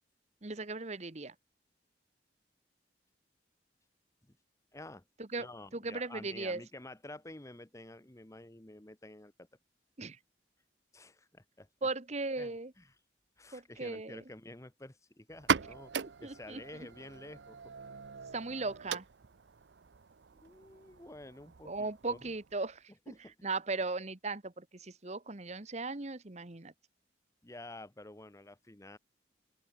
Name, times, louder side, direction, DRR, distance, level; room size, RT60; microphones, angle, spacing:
voice 1, 0.4-1.3 5.2-5.5 5.7-6.6 10.0-10.2 11.8-12.7 13.5-14.2 16.2-16.6 18.3-19.1 21.6-23.1 23.4-26.7, right 3 dB, 40° right, 1.3 m, -37 dB
voice 2, 4.7-5.0 5.4-9.5 10.9-11.7 12.4-12.9 13.4-15.9 16.2-17.7 20.3-22.2 23.1-23.3 27.4-29.0, left 1 dB, 15° left, 1.2 m, -50 dB
sound 1, 15.3-22.8, right 6 dB, 80° right, 0.6 m, -39 dB
open air
head